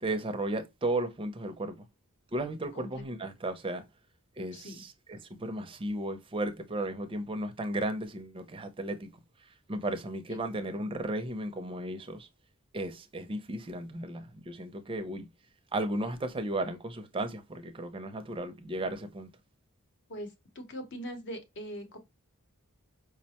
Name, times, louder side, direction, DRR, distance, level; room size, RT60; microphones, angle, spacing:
voice 1, 0.0-1.9 2.3-3.8 4.4-9.1 9.7-12.3 12.7-15.3 15.7-19.3, right 1 dB, 25° right, 0.5 m, -35 dB
voice 2, 2.7-3.0 4.5-4.8 20.1-22.0, equal, 55° left, 0.8 m, -41 dB
4.8 x 2.1 x 2.8 m
head